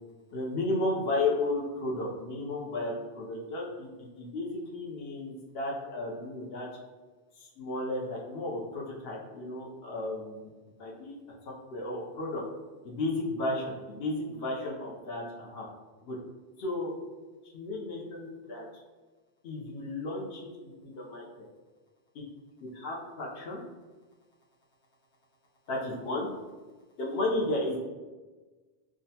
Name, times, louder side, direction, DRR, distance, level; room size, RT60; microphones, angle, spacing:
voice 1, 0.3-6.7 7.4-10.5 10.8-11.2 11.7-12.4 12.8-15.6 16.0-16.2 16.6-16.9 17.5-18.7 19.4-20.5 20.8-21.2 22.6-23.6 25.7-26.3 27.0-27.8, left 2 dB, 70° left, -3 dB, 0.8 m, -33 dB
3.6 x 2.1 x 2.7 m, 1.3 s
omnidirectional pair, 1.1 m